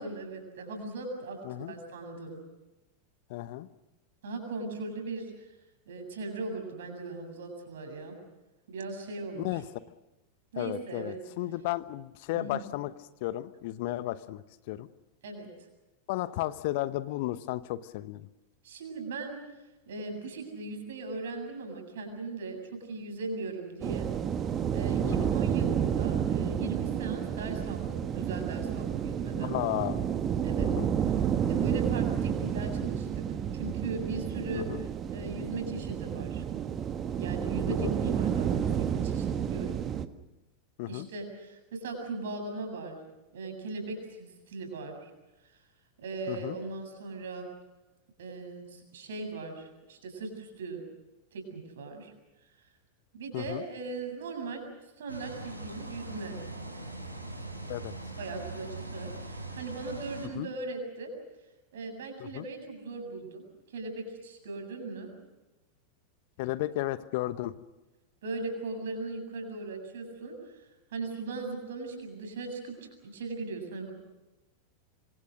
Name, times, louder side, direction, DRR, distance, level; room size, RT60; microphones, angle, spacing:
voice 1, 0.0-2.4 4.2-5.5 5.9-8.2 8.7-9.6 10.5-11.2 12.3-12.6 15.2-15.5 18.6-19.4 19.9-24.1 24.7-29.5 30.4-30.7 31.0-33.1 33.5-36.4 37.2-39.8 40.8-43.0 43.3-45.1 46.0-47.5 48.2-50.8 51.3-52.1 53.1-54.6 55.0-56.4 58.1-61.1 61.7-65.1 68.2-70.5 70.9-72.7 73.0-73.9, right 3 dB, 60° right, 5 dB, 7.6 m, -39 dB
voice 2, 1.4-1.8 3.3-3.7 9.4-9.6 10.6-12.9 13.2-14.9 16.1-18.3 25.0-25.3 29.4-30.0 30.6-30.9 34.5-34.8 37.7-37.9 40.8-41.1 46.3-46.6 53.3-53.6 57.7-57.9 60.3-60.5 62.2-62.4 66.4-67.6, left 16 dB, 50° left, 15 dB, 1.1 m, -34 dB
sound 1, 23.8-40.1, right 8 dB, 30° right, 1.4 m, -30 dB
sound 2, 55.1-60.3, right 2 dB, 85° right, 6.2 m, -41 dB
26.0 x 25.5 x 6.6 m, 1.0 s
figure-of-eight pair, 90°, 0 cm